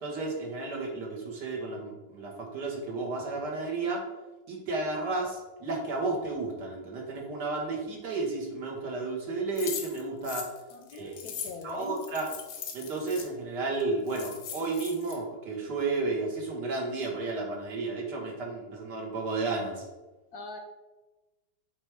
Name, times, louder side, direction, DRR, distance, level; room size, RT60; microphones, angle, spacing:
voice 1, 0.0-4.0 4.5-10.4 10.9-11.2 11.6-12.3 12.7-19.8, right 3 dB, 70° right, 0 dB, 2.0 m, -32 dB
sound 1, 9.6-13.3 13.8-13.9 14.1-15.1, left 7 dB, 85° left, 1.6 m, -39 dB
voice 2, 10.7-12.0 20.3-20.6, left 4 dB, 65° left, 5 dB, 1.1 m, -42 dB
8.3 x 3.4 x 4.7 m, 1.1 s
omnidirectional pair, 1.9 m